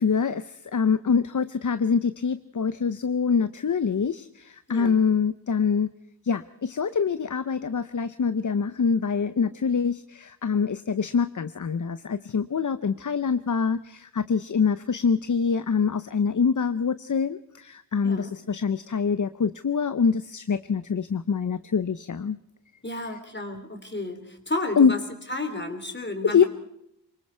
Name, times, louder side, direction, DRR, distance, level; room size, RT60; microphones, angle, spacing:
voice 1, 0.0-5.9 6.2-22.4 24.8-24.9 26.2-26.4, left 6 dB, 50° left, 13 dB, 0.7 m, -25 dB
voice 2, 4.7-5.0 18.0-18.3 22.8-25.0 25.3-26.5, left 2 dB, 25° left, 6 dB, 3.3 m, -32 dB
25.0 x 23.0 x 4.5 m, 0.75 s
wide cardioid pair, 70°, 41 cm